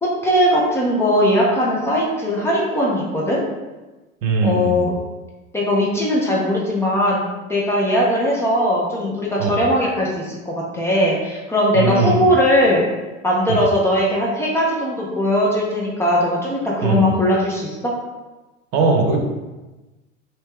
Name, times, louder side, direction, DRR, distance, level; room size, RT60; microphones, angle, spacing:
voice 1, 0.0-3.4 4.4-4.9 5.5-7.2 7.5-12.8 13.2-18.0, equal, 5° left, -4 dB, 0.3 m, -19 dB
voice 2, 4.2-4.9 9.4-9.6 11.7-12.2 13.5-13.6 16.8-17.1 18.7-19.2, right 3 dB, 45° right, 2 dB, 0.7 m, -19 dB
3.0 x 2.8 x 3.5 m, 1.1 s
figure-of-eight pair, 85°, 40 cm